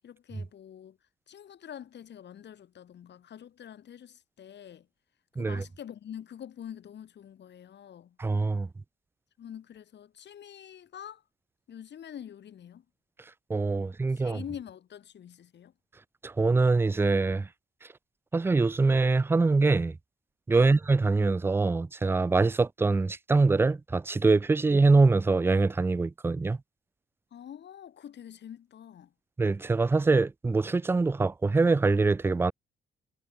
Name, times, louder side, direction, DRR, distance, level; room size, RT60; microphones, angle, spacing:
voice 1, 0.0-1.0 1.3-4.9 5.4-8.2 9.4-11.2 11.7-12.8 13.8-15.7 20.6-20.8 27.3-29.1, left 9 dB, 60° left, 4.0 m, -45 dB
voice 2, 8.2-8.7 13.5-14.4 16.2-17.5 18.3-20.0 20.5-26.6 29.4-32.5, right 3 dB, 10° right, 0.3 m, -24 dB
cardioid pair, 90°, 20 cm